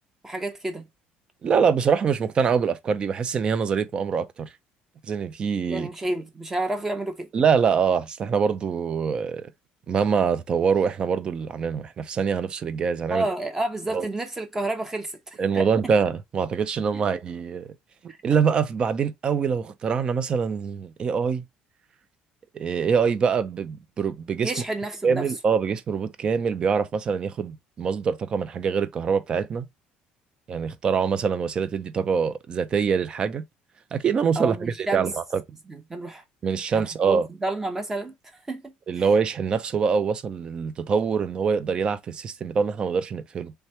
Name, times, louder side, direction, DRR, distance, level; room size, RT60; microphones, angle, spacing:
voice 1, 0.2-0.8 5.7-7.3 13.1-15.7 16.9-17.0 18.1-18.2 24.4-25.3 34.4-35.1 35.7-36.2 36.7-38.1 38.5-39.1, right 2 dB, 10° right, 0.8 m, -30 dB
voice 2, 1.4-4.5 5.1-5.9 7.3-9.5 9.9-13.3 13.9-14.1 15.4-17.7 18.2-21.4 22.5-24.5 25.0-29.7 30.5-33.4 33.9-35.4 36.4-37.3 38.9-43.5, right 6 dB, 30° right, 0.5 m, -24 dB
3.3 x 3.2 x 4.2 m
cardioid pair, 155°, 3 cm